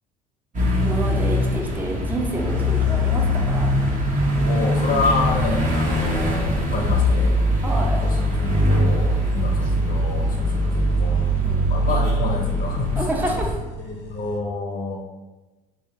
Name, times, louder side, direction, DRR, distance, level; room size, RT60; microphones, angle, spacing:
sound 1, 0.5-13.6, equal, 40° right, 1.1 m, -21 dB
voice 1, 0.8-3.7 5.9-6.0 7.6-8.0 11.4-11.7 13.0-13.5, right 1 dB, 10° right, 0 dB, 0.6 m, -28 dB
sound 2, 1.2-14.4, right 2 dB, 85° left, 0.7 m, -39 dB
voice 2, 4.4-7.4 7.8-11.4 11.7-13.1 13.8-15.0, left 3 dB, 45° left, 1 dB, 0.7 m, -28 dB
3.1 x 2.8 x 3.7 m, 1.1 s
hypercardioid pair, 65°, 20 cm